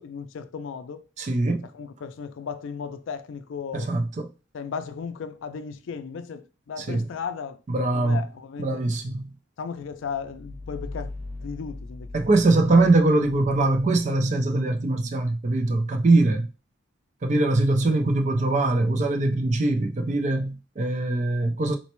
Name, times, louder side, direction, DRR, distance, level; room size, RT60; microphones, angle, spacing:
voice 1, 0.0-1.0 1.6-4.0 4.5-7.6 7.9-8.9 9.6-11.1 11.4-12.2 12.7-12.9, left 6 dB, 80° left, 0.4 m, -35 dB
voice 2, 1.2-1.7 3.7-4.3 6.8-7.1 7.7-8.2 8.6-9.3 12.1-16.5 17.2-21.8, right 2 dB, 35° right, 0.4 m, -22 dB
sound 1, 10.0-14.5, left 2 dB, 75° right, 0.7 m, -40 dB
4.1 x 2.1 x 2.9 m
head